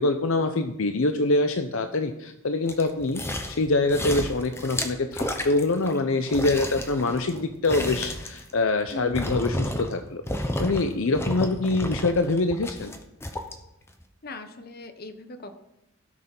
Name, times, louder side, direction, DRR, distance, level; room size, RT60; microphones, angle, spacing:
voice 1, 0.0-12.9, left 2 dB, 65° left, 8 dB, 0.7 m, -25 dB
sound 1, 2.7-3.6 3.9-6.0 6.3-10.0 10.3-10.8 11.1-13.5 14.0-14.1, left 1 dB, 10° left, 0.9 m, -31 dB
voice 2, 8.9-9.4 14.2-15.6, left 2 dB, 45° left, 8 dB, 1.0 m, -40 dB
16.0 x 6.6 x 5.5 m, 0.88 s
head